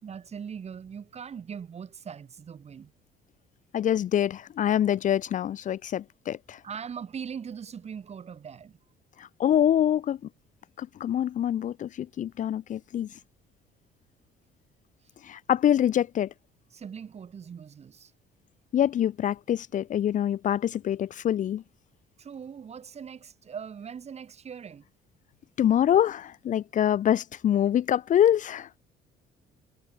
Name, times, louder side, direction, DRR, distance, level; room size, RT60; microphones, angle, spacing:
voice 1, 0.0-2.9 6.6-8.8 16.7-18.1 22.2-24.9, right 7 dB, 40° right, 4.2 m, -40 dB
voice 2, 3.7-6.6 9.2-10.2 10.8-13.1 15.2-16.3 18.7-21.6 25.6-28.7, left 10 dB, 50° left, 0.8 m, -25 dB
cardioid pair, 110°, 17 cm